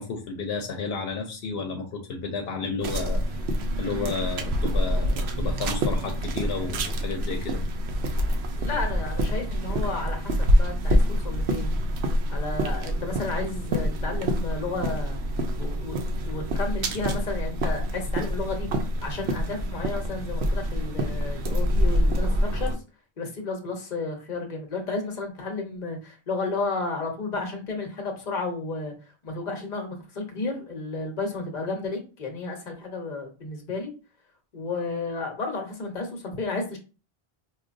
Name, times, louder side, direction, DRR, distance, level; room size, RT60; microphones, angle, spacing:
voice 1, 0.0-3.2 3.8-7.6, left 4 dB, 80° left, 4 dB, 0.8 m, -32 dB
sound 1, 2.8-22.7, equal, 90° right, 0.9 m, -26 dB
voice 2, 8.6-11.7 12.3-15.2 15.6-15.9 16.2-18.7 19.0-22.8 23.2-28.9 29.2-33.9 34.5-36.8, left 3 dB, 50° left, 3 dB, 1.0 m, -32 dB
4.6 x 2.3 x 2.5 m, 0.34 s
omnidirectional pair, 1.0 m